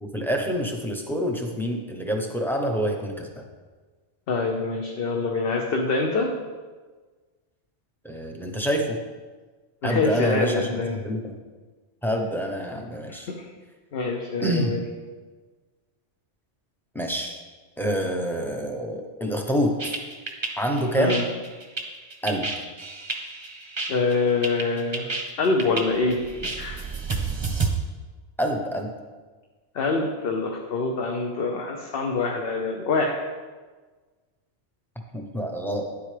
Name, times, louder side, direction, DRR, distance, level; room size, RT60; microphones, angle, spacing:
voice 1, 0.0-3.4 8.0-9.0 9.8-11.3 12.0-13.3 14.4-14.8 16.9-17.4 17.8-19.9 20.6-21.3 22.2-22.5 28.4-28.9 35.1-35.9, equal, ahead, 2 dB, 0.7 m, -27 dB
voice 2, 4.3-6.3 9.8-11.0 13.1-13.5 13.9-14.8 21.0-21.2 23.9-25.1 25.4-26.2 26.6-26.8 27.1-27.2 29.7-33.2, left 3 dB, 60° left, 1 dB, 0.9 m, -25 dB
sound 1, 19.8-27.7, right 4 dB, 25° right, 0.8 m, -31 dB
9.8 x 7.9 x 3.3 m, 1.4 s
omnidirectional pair, 1.2 m